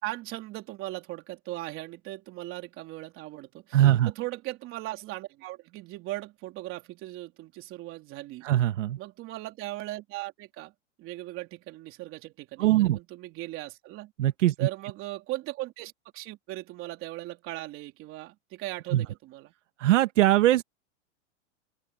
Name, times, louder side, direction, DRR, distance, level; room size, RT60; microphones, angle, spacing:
voice 1, 0.0-8.5 9.0-10.7 11.0-14.1 14.6-19.5, right 17 dB, 35° right, 3.5 m, -38 dB
voice 2, 3.7-4.1 8.4-9.0 12.6-13.0 14.2-14.7 18.9-19.0 19.8-20.6, right 14 dB, 75° right, 1.4 m, -21 dB
open air
supercardioid pair, 150°, 37 cm